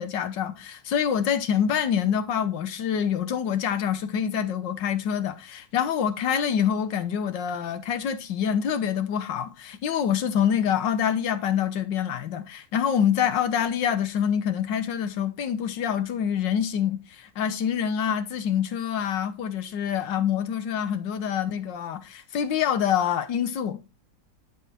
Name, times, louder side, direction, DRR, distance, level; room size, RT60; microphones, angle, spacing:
voice 1, 0.0-23.8, left 8 dB, 90° left, 1.7 m, -26 dB
10.5 x 5.7 x 4.2 m
omnidirectional pair, 1.9 m